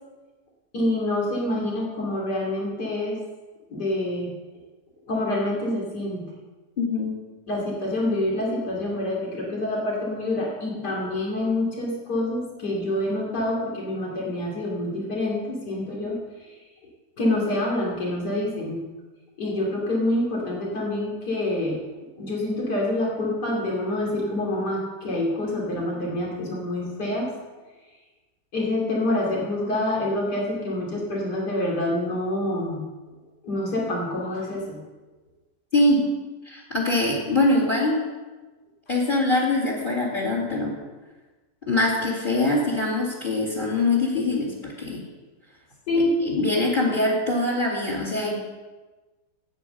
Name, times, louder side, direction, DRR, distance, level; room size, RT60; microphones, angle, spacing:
voice 1, 0.7-3.2 3.7-4.3 5.1-6.3 7.5-16.2 16.5-16.6 17.2-18.8 19.4-21.8 22.2-27.3 28.5-32.8 33.4-34.8 45.9-46.1, left 1 dB, 70° left, -2 dB, 3.3 m, -26 dB
voice 2, 6.8-7.1 35.7-36.0 36.4-38.0 38.9-40.7 41.7-45.0 46.2-48.4, left 2 dB, 30° left, -3 dB, 2.6 m, -23 dB
9.9 x 8.6 x 7.8 m, 1.2 s
omnidirectional pair, 1.8 m